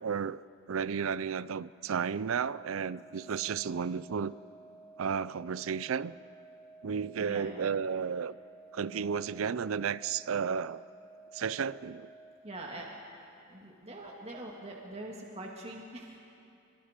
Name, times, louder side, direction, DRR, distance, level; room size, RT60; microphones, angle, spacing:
voice 1, 0.0-4.3 5.0-6.2 6.8-8.4 8.7-10.8 11.3-12.1, right 6 dB, 75° right, 19 dB, 0.5 m, -33 dB
sound 1, 2.4-12.4, right 2 dB, 15° left, 2.8 m, -54 dB
voice 2, 7.2-7.6 12.4-12.9 13.5-16.2, right 1 dB, 30° right, -1 dB, 2.1 m, -43 dB
30.0 x 23.5 x 5.2 m, 2.7 s
head